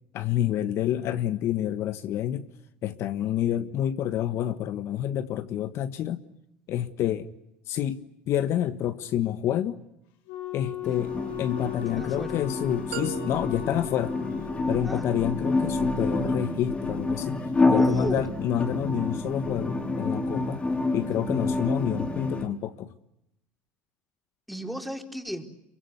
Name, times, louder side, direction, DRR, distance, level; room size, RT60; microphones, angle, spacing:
voice 1, 0.1-2.5 2.8-6.2 6.7-7.3 7.7-9.8 10.5-11.1 11.4-14.2 14.7-17.4 17.7-20.6 20.9-22.9, left 11 dB, 60° left, 9 dB, 1.5 m, -28 dB
Wind instrument woodwind instrument, 10.3-14.6, left 11 dB, 75° left, 3.8 m, -37 dB
sound 1, 10.8-22.5, left 2 dB, 20° left, 4.3 m, -28 dB
voice 2, 11.9-12.4 14.8-15.1 17.7-18.3 24.5-25.5, equal, ahead, 3 dB, 4.3 m, -35 dB
sound 2, 12.9-15.0, right 13 dB, 90° right, 2.5 m, -41 dB
28.0 x 24.0 x 8.2 m, 0.86 s
hypercardioid pair, 80°, 5 cm